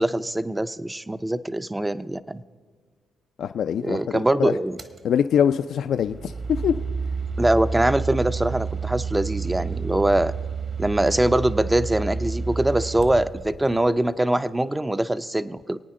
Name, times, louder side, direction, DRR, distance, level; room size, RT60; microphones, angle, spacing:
voice 1, 0.0-2.4 3.8-4.8 7.4-10.3 10.8-15.8, right 1 dB, 10° right, 13 dB, 0.5 m, -23 dB
voice 2, 3.4-4.5 5.0-6.3 6.6-6.8, left 8 dB, 65° left, 9 dB, 0.4 m, -23 dB
sound 1, 4.8-5.0 5.9-13.9, right 5 dB, 40° right, 1.0 m, -30 dB
26.5 x 9.1 x 3.7 m, 1.6 s
cardioid pair, 90°, 0 cm